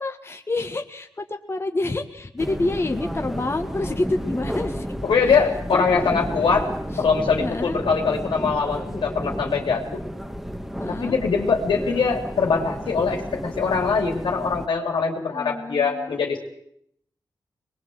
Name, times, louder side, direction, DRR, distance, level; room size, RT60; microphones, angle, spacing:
voice 1, 0.0-4.9 5.3-5.4 5.7-6.1 6.9-7.0 7.4-7.8 10.8-11.2 15.0-16.3, left 2 dB, 30° left, 5 dB, 1.8 m, -28 dB
sound 1, 2.4-14.7, equal, 5° right, 1.7 m, -32 dB
voice 2, 5.0-6.7 7.0-10.0 10.9-16.4, left 5 dB, 90° left, 2 dB, 3.3 m, -22 dB
23.0 x 21.0 x 8.0 m, 0.71 s
cardioid pair, 65°, 8 cm